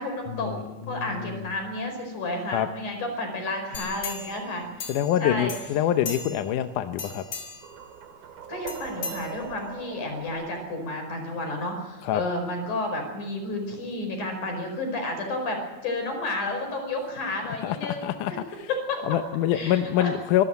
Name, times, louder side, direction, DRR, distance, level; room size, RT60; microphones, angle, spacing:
voice 1, 0.0-4.9 5.2-5.5 8.5-18.4 18.7-19.0 19.5-20.1, left 2 dB, 55° left, 3 dB, 6.4 m, -31 dB
voice 2, 1.1-1.4 2.5-2.7 4.9-7.2 12.0-12.2 17.6-18.3 19.0-20.4, left 11 dB, 75° left, 8 dB, 2.1 m, -25 dB
sound 1, 3.7-5.2 5.5-6.6 6.9-7.7 8.7-9.8 10.3-10.4, left 4 dB, 40° left, 4.3 m, -37 dB
sound 2, 7.6-12.6, right 8 dB, 80° right, 3.7 m, -43 dB
26.0 x 13.0 x 9.2 m, 1.1 s
omnidirectional pair, 4.2 m